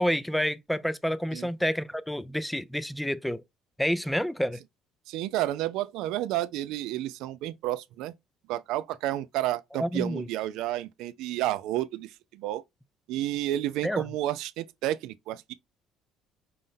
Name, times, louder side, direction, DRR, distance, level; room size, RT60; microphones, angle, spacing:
voice 1, 0.0-3.4 3.8-4.6 9.7-10.2 13.8-14.0, equal, 5° left, 0.4 m, -28 dB
voice 2, 5.1-8.1 8.5-12.6 13.1-15.5, right 14 dB, 75° right, 0.4 m, -31 dB
5.2 x 2.1 x 3.7 m
cardioid pair, 105°, 0 cm